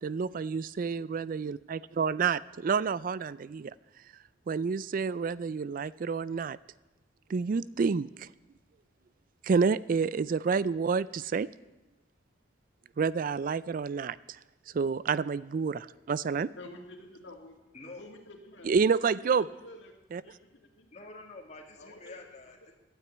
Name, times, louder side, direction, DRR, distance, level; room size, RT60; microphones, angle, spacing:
voice 1, 0.0-3.7 4.5-6.6 7.3-8.3 9.4-11.5 13.0-14.4 14.7-16.5 18.7-19.5 20.1-20.2, right 5 dB, 45° right, 19 dB, 0.4 m, -29 dB
voice 2, 16.6-17.7 17.9-18.7 19.2-19.9 20.2-20.9 21.8-22.7, left 1 dB, 75° left, 2 dB, 2.5 m, -50 dB
voice 3, 17.7-18.1 20.9-22.7, left 2 dB, 40° left, 1 dB, 2.3 m, -47 dB
12.5 x 9.3 x 9.1 m, 1.1 s
head